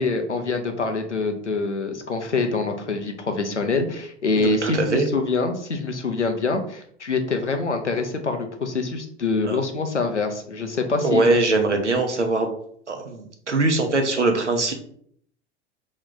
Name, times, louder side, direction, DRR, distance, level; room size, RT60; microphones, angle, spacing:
voice 1, 0.0-11.4, left 3 dB, 90° left, 5 dB, 0.7 m, -25 dB
voice 2, 4.4-5.1 9.4-9.6 11.0-12.5 12.9-14.7, right 2 dB, 90° right, 4 dB, 0.8 m, -22 dB
3.3 x 3.1 x 3.9 m, 0.63 s
figure-of-eight pair, 85°, 34 cm